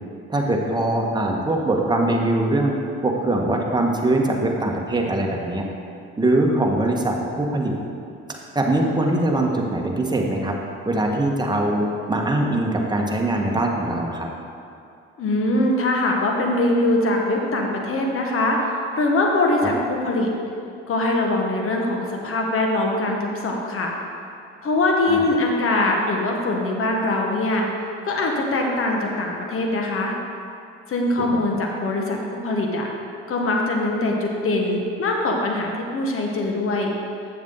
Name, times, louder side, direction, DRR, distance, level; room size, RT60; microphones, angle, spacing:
voice 1, 0.3-2.7 3.0-5.6 6.2-7.7 8.5-10.6 10.8-14.3 25.1-25.2 31.2-31.4, right 1 dB, 15° right, 0 dB, 1.3 m, -22 dB
voice 2, 15.2-20.3 20.9-23.9 24.6-27.7 28.0-30.1 30.9-32.2 32.4-32.9 33.3-36.9, left 2 dB, 45° left, 1 dB, 1.4 m, -22 dB
8.2 x 7.2 x 3.8 m, 2.5 s
hypercardioid pair, 65°, 30 cm